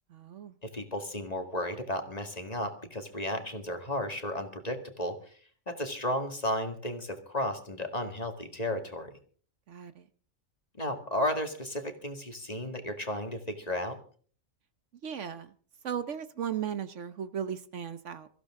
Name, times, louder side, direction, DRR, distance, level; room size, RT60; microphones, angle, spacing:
voice 1, 0.1-0.6 9.7-10.1 15.0-15.5 15.8-18.3, right 8 dB, 65° right, 12 dB, 1.2 m, -36 dB
voice 2, 0.6-5.3 5.7-9.1 10.8-14.0, left 1 dB, 30° left, 6 dB, 2.1 m, -34 dB
23.5 x 15.0 x 3.7 m, 0.44 s
omnidirectional pair, 1.4 m